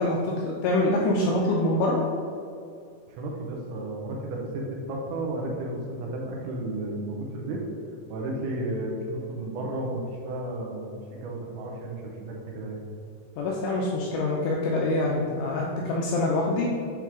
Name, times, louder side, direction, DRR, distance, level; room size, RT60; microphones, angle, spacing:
voice 1, 0.0-2.0 13.4-16.7, left 2 dB, 85° left, -3 dB, 2.5 m, -25 dB
voice 2, 3.1-7.6 8.1-12.8, right 1 dB, 85° right, -1 dB, 3.3 m, -33 dB
8.4 x 3.1 x 3.6 m, 2.4 s
omnidirectional pair, 5.5 m